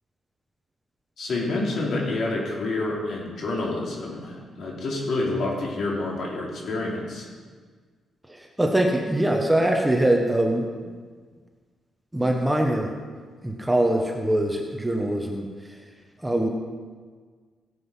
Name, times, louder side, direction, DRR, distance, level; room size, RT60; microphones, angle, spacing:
voice 1, 1.2-7.3, left 2 dB, 55° left, -3 dB, 3.6 m, -28 dB
voice 2, 8.3-10.7 12.1-12.9 13.4-15.5 16.2-16.5, right 1 dB, 5° right, 2 dB, 1.1 m, -23 dB
17.5 x 7.8 x 5.6 m, 1.5 s
cardioid pair, 150°, 0 cm